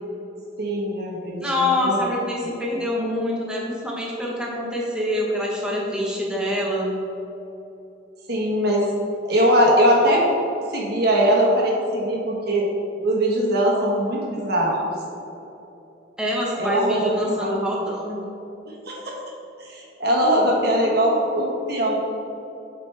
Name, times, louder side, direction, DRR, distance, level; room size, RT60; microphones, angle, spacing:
voice 1, 0.6-2.0 8.3-8.8 9.2-10.2 10.7-12.7 13.0-14.8 16.6-17.7 18.7-19.1 19.6-22.0, equal, 55° right, -2 dB, 1.4 m, -21 dB
voice 2, 1.4-6.9 16.2-18.2, left 1 dB, 5° right, -4 dB, 1.1 m, -25 dB
7.7 x 5.1 x 3.4 m, 3.0 s
head